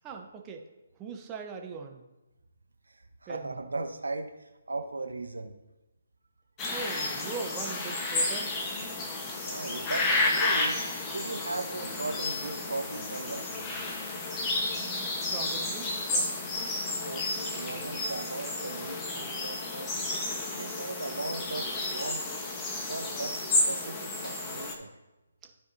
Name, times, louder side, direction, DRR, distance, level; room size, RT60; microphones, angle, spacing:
voice 1, 0.0-0.7 1.0-2.0 3.3-3.6 6.7-8.5 14.7-16.3 25.4-25.5, right 5 dB, 20° right, 2 dB, 0.9 m, -40 dB
voice 2, 2.9-5.5 9.5-10.8 11.1-13.6 14.1-14.2 16.9-20.1 20.5-22.2 22.9-24.9, right 2 dB, 85° right, 7 dB, 0.9 m, -38 dB
sound 1, 6.6-24.7, left 2 dB, 20° left, 1.0 m, -32 dB
13.5 x 4.6 x 2.7 m, 1.0 s
figure-of-eight pair, 150°, 0 cm